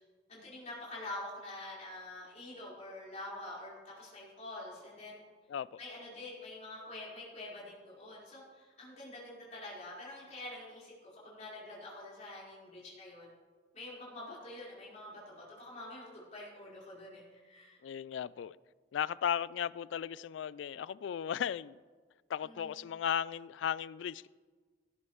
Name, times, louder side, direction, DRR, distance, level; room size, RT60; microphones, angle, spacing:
voice 1, 0.3-5.2 5.8-13.3 13.7-17.8 22.4-22.8, left 1 dB, 40° left, 4.5 m, -46 dB
voice 2, 5.5-5.8 17.8-18.6 18.9-21.8 22.3-24.3, left 8 dB, 85° left, 0.3 m, -36 dB
18.0 x 11.0 x 3.1 m
head